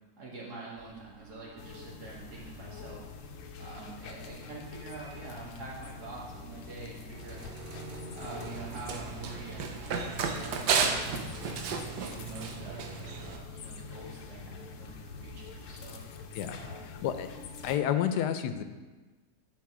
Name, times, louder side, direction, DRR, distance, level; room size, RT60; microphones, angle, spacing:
voice 1, 0.2-3.1 3.6-7.5 8.1-11.6 12.0-16.0 16.5-16.9, right 3 dB, 70° right, -5 dB, 2.4 m, -46 dB
sound 1, 0.8-17.8, right 2 dB, 50° right, 1.0 m, -51 dB
sound 2, 1.6-17.8, left 6 dB, 65° left, 0.8 m, -46 dB
Run, 8.2-13.4, right 5 dB, 90° right, 1.4 m, -33 dB
voice 2, 16.8-17.3 17.6-18.6, left 10 dB, 85° left, 10 dB, 1.2 m, -30 dB
10.5 x 4.3 x 4.8 m, 1.3 s
omnidirectional pair, 1.7 m